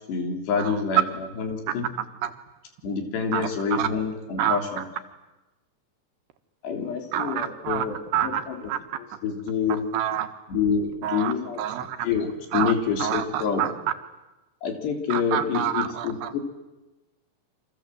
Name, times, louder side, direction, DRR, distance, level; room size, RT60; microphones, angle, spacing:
voice 1, 0.1-1.9 2.8-4.9 6.6-8.6 8.9-9.9 10.5-11.6 12.0-13.7 14.6-16.4, left 6 dB, 90° left, 4 dB, 5.6 m, -27 dB
voice 2, 3.3-3.9 4.4-4.6 7.1-7.9 8.1-8.8 9.9-10.3 11.0-12.1 12.5-12.7 13.0-13.7 15.1-16.4, right 11 dB, 80° right, 8 dB, 3.6 m, -28 dB
29.0 x 26.0 x 7.8 m, 1.1 s
omnidirectional pair, 4.7 m